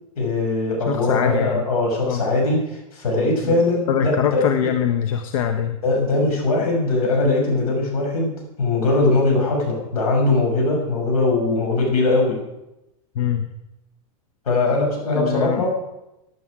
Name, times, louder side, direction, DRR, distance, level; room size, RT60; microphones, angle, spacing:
voice 1, 0.2-4.4 5.8-8.3 8.6-12.4 14.4-15.9, left 2 dB, 85° left, 0 dB, 6.6 m, -20 dB
voice 2, 0.9-1.6 2.0-2.2 3.4-3.5 3.9-5.8 13.1-13.5 15.1-15.7, left 8 dB, 65° left, 7 dB, 1.1 m, -23 dB
16.0 x 11.0 x 4.9 m, 0.93 s
supercardioid pair, 135°, 18 cm